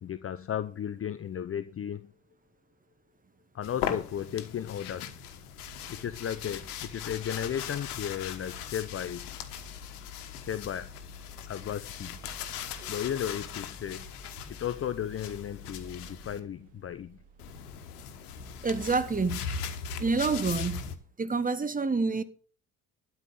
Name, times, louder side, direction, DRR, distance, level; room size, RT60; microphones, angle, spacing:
voice 1, 0.0-2.1 3.5-5.2 5.9-9.3 10.4-10.9 11.5-12.2 12.9-14.1 14.5-17.2, left 9 dB, 30° left, 0.7 m, -35 dB
sound 1, 3.6-16.4 17.4-21.0, left 8 dB, 75° left, 1.4 m, -39 dB
sound 2, 5.6-19.3, left 1 dB, 65° right, 1.9 m, -51 dB
voice 2, 18.6-19.5 20.0-20.8 21.2-22.2, right 4 dB, 20° right, 1.4 m, -27 dB
12.0 x 5.6 x 8.6 m
figure-of-eight pair, 50°, 45 cm